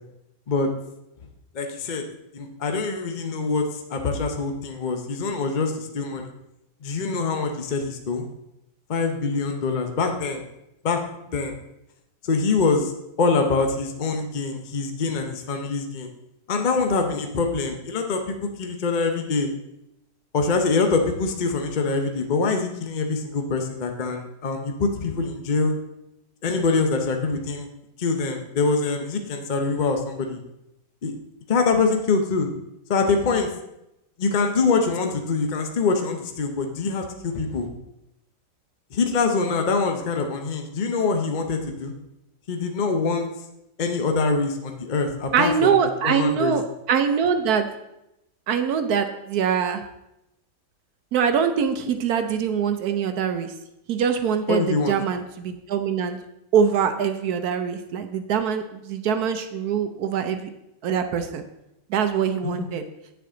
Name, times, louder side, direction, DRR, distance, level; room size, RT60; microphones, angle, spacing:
voice 1, 1.5-2.0 2.3-6.3 6.8-8.3 8.9-10.4 10.8-11.0 11.3-11.6 12.2-12.9 13.2-16.1 16.5-19.5 20.3-25.7 26.4-27.7 28.0-30.4 31.0-31.1 31.5-32.5 32.9-33.5 34.2-37.7 38.9-41.9 42.5-43.3 43.8-45.7 46.0-46.6 54.5-54.9 62.4-62.7, left 4 dB, 55° left, 5 dB, 0.5 m, -24 dB
voice 2, 45.3-46.6 46.9-47.7 48.5-49.8 51.1-53.5 53.9-56.2 56.5-60.5 60.8-61.4 61.9-62.8, right 7 dB, 70° right, 8 dB, 1.1 m, -23 dB
8.5 x 6.9 x 3.8 m, 0.86 s
omnidirectional pair, 1.9 m